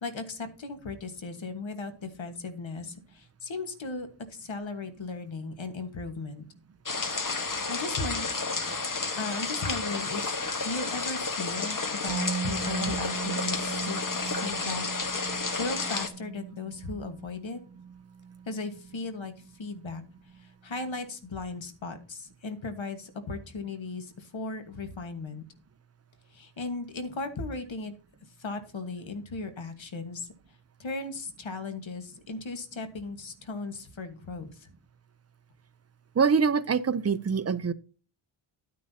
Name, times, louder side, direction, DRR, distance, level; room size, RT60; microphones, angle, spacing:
voice 1, 0.0-6.4 7.7-8.3 9.2-17.6 18.5-20.0 20.3-25.4 26.3-27.9 28.4-30.3 30.8-34.7, left 3 dB, 65° left, 1.5 m, -37 dB
sound 1, 6.9-16.1, left 4 dB, 40° left, 1.2 m, -31 dB
Musical instrument, 12.1-20.0 20.2-20.4, right 6 dB, 15° right, 1.0 m, -39 dB
voice 2, 36.1-37.7, right 5 dB, 30° right, 0.5 m, -24 dB
11.0 x 9.6 x 2.8 m
wide cardioid pair, 105°, 50 cm